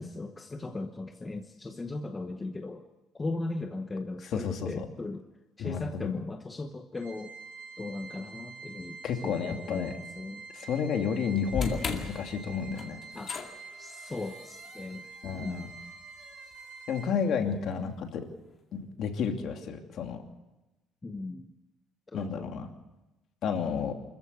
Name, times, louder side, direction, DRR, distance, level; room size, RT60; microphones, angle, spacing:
voice 1, 0.0-2.8 3.1-5.2 5.6-7.3 7.8-10.5 13.1-13.3 13.8-15.0 15.4-15.7 21.0-21.5 22.1-22.5, left 2 dB, 15° left, 5 dB, 1.0 m, -38 dB
voice 2, 4.3-4.8 5.6-6.0 9.0-9.9 10.5-13.0 15.2-15.7 16.9-18.2 18.7-20.2 22.1-22.7 23.4-23.9, left 6 dB, 50° left, 4 dB, 2.7 m, -31 dB
Organ, 6.9-17.6, right 4 dB, 60° right, 4.1 m, -47 dB
sound 1, 11.5-17.8, left 5 dB, 30° left, 2.2 m, -40 dB
25.0 x 14.5 x 8.3 m, 1.0 s
cardioid pair, 175°, 0 cm